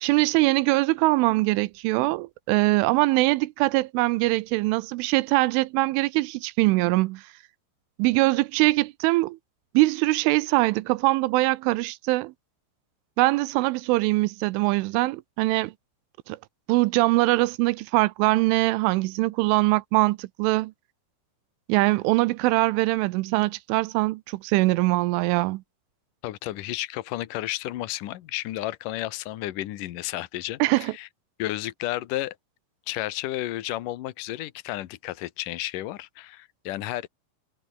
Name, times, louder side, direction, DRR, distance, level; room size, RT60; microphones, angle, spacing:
voice 1, 0.0-7.2 8.0-9.4 9.7-12.3 13.2-15.7 16.3-16.4 16.7-20.7 21.7-25.6 30.6-30.9, right 21 dB, 85° right, 3.1 m, -22 dB
voice 2, 26.2-31.1 31.4-32.4 32.9-37.1, left 15 dB, 85° left, 1.8 m, -32 dB
omnidirectional pair, 5.6 m